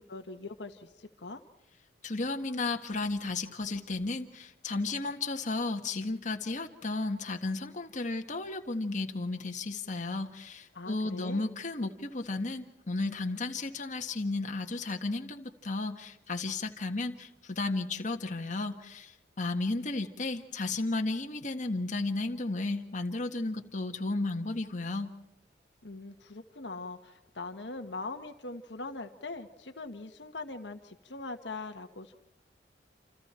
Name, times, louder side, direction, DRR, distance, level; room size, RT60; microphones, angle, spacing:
voice 1, 0.0-1.4 10.7-11.5 25.8-32.1, left 3 dB, 70° left, 6 dB, 1.5 m, -41 dB
voice 2, 2.0-25.1, left 2 dB, 45° left, 4 dB, 1.6 m, -33 dB
28.5 x 28.0 x 4.4 m, 0.86 s
head